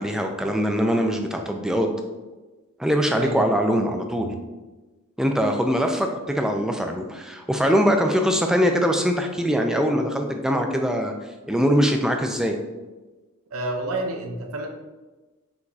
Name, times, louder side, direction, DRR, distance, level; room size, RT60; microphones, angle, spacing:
voice 1, 0.0-1.9 2.8-4.3 5.2-11.1 11.5-12.6, equal, 5° right, 3 dB, 0.3 m, -22 dB
voice 2, 13.5-14.7, right 2 dB, 80° right, 3 dB, 0.7 m, -29 dB
5.8 x 3.0 x 2.6 m, 1.2 s
head